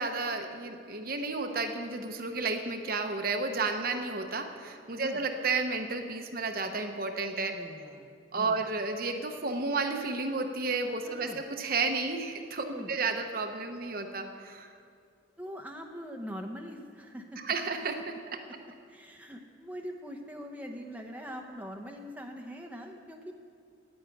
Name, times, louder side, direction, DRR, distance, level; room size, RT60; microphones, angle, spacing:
voice 1, 0.0-7.5 8.3-14.7 17.4-18.4, right 3 dB, 50° right, 5 dB, 0.9 m, -32 dB
voice 2, 7.5-8.6 11.0-11.4 12.6-12.9 15.4-17.4 18.9-23.3, equal, 10° right, 2 dB, 0.8 m, -43 dB
9.6 x 9.5 x 9.1 m, 2.3 s
head